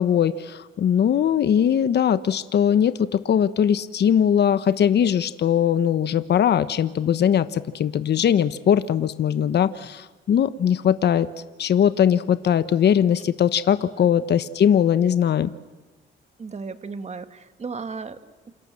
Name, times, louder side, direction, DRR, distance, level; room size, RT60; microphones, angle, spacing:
voice 1, 0.0-11.3 11.6-15.5, left 9 dB, 60° left, 13 dB, 1.1 m, -20 dB
voice 2, 16.4-18.5, right 4 dB, 35° right, 10 dB, 2.0 m, -35 dB
28.0 x 27.5 x 7.7 m, 1.2 s
cardioid pair, 90°, 20 cm